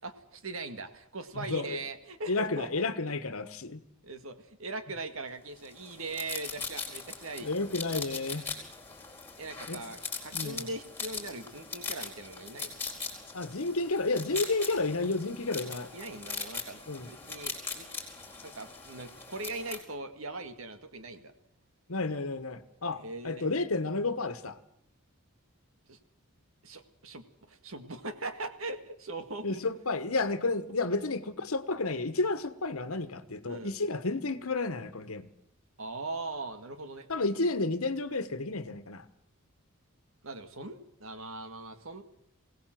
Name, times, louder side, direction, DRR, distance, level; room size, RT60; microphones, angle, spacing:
voice 1, 0.0-2.9 4.0-7.5 9.4-12.8 15.9-16.8 17.1-17.9 18.4-21.3 22.9-23.5 25.9-26.0 26.6-29.6 31.0-31.1 33.5-33.7 35.8-37.1 40.2-42.0, right 2 dB, 70° right, 1.9 m, -40 dB
voice 2, 1.4-1.8 2.3-3.8 7.4-8.5 9.7-9.8 10.3-10.7 13.3-15.9 16.9-17.1 21.9-24.6 29.4-35.3 37.1-39.1, left 3 dB, 80° left, 1.3 m, -31 dB
sound 1, 5.6-19.8, left 4 dB, 10° left, 4.4 m, -40 dB
21.5 x 17.5 x 7.7 m
head